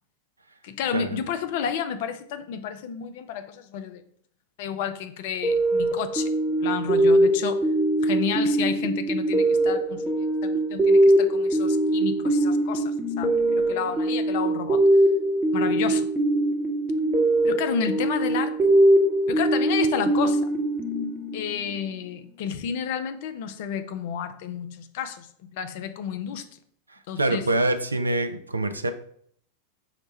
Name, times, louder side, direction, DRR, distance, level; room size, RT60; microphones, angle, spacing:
voice 1, 0.6-4.0 4.6-6.3 6.6-7.6 8.0-14.8 15.5-16.1 17.4-18.7 19.3-20.4 21.3-26.4 27.1-27.5, left 8 dB, 50° left, 10 dB, 0.4 m, -31 dB
sound 1, 5.4-21.8, right 1 dB, 15° right, 0.8 m, -22 dB
voice 2, 27.2-28.9, right 2 dB, 80° right, 9 dB, 0.3 m, -25 dB
4.9 x 2.1 x 4.2 m, 0.63 s
figure-of-eight pair, 90°, 0 cm